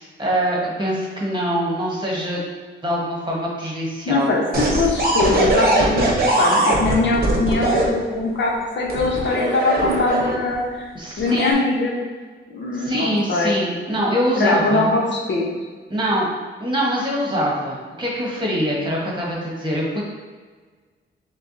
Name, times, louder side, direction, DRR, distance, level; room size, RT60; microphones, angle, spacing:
voice 1, 0.0-2.4 2.8-4.3 10.9-11.5 12.7-14.8 15.9-16.3 16.6-20.0, equal, 20° right, -4 dB, 1.3 m, -23 dB
voice 2, 4.1-10.9 11.2-11.9 12.5-13.6 14.4-15.5, left 2 dB, 65° left, -2 dB, 0.9 m, -21 dB
sound 1, 4.5-7.9 8.9-10.5 11.2-11.5, right 1 dB, 45° right, 0.9 m, -20 dB
6.7 x 2.3 x 2.6 m, 1.4 s
cardioid pair, 100°, 21 cm